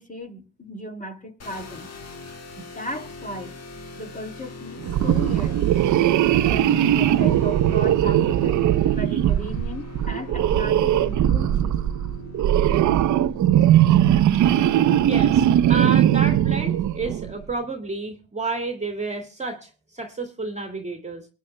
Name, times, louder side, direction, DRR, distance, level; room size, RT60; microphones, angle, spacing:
voice 1, 0.0-1.9 2.6-3.6 4.0-5.6 6.3-8.7 8.9-11.8, left 1 dB, 20° left, 2.5 m, -36 dB
sound 1, 1.4-15.7, left 2 dB, 35° left, 2.0 m, -40 dB
sound 2, 4.8-17.3, right 11 dB, 45° right, 0.7 m, -19 dB
voice 2, 15.0-21.3, right 3 dB, 15° right, 2.2 m, -30 dB
25.0 x 9.6 x 2.2 m
supercardioid pair, 105°, 43 cm